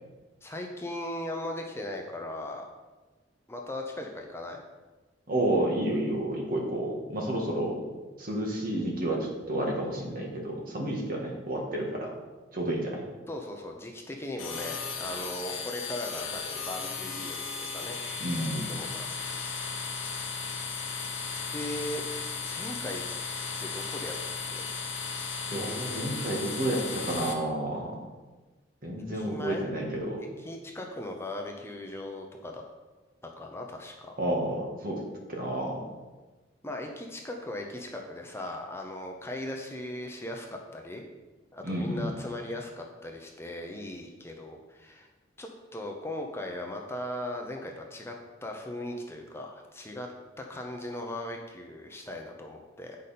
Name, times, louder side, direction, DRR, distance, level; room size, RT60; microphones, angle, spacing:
voice 1, 0.4-2.7 3.5-4.6 13.3-19.6 21.5-22.0 22.5-23.0 23.6-24.1 24.5-24.7 29.1-29.6 30.4-32.6 33.2-34.1 36.6-41.0 41.5-45.1 45.4-48.1 48.4-50.1 50.4-53.0, left 1 dB, 15° left, 1 dB, 0.7 m, -38 dB
voice 2, 5.3-7.8 8.2-12.1 12.5-13.0 18.2-18.7 25.5-28.0 28.8-30.2 34.2-35.0 35.3-35.8 41.6-42.1, right 1 dB, 50° right, -1 dB, 1.6 m, -30 dB
sound 1, 14.4-27.3, left 5 dB, 90° left, 1.0 m, -35 dB
8.2 x 5.2 x 4.2 m, 1.2 s
head